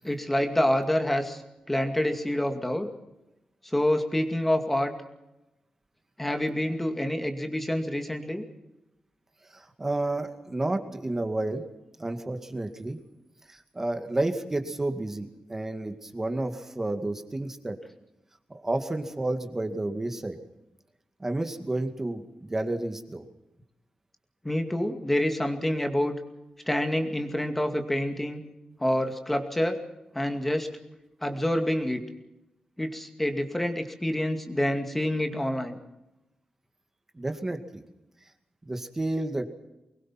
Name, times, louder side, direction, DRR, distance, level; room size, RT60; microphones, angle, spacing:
voice 1, 0.0-1.4 1.7-2.9 3.6-4.9 6.2-8.4 24.4-26.2 26.7-28.4 28.8-29.8 30.1-30.7 31.2-32.0 32.8-35.8, left 1 dB, 10° left, 6 dB, 2.3 m, -27 dB
voice 2, 9.5-11.6 12.0-13.0 13.5-17.8 18.5-20.4 21.2-23.2 37.1-37.8 38.6-39.5, right 2 dB, 20° right, 7 dB, 2.1 m, -31 dB
24.5 x 21.5 x 5.9 m, 0.95 s
wide cardioid pair, 150°, 2 cm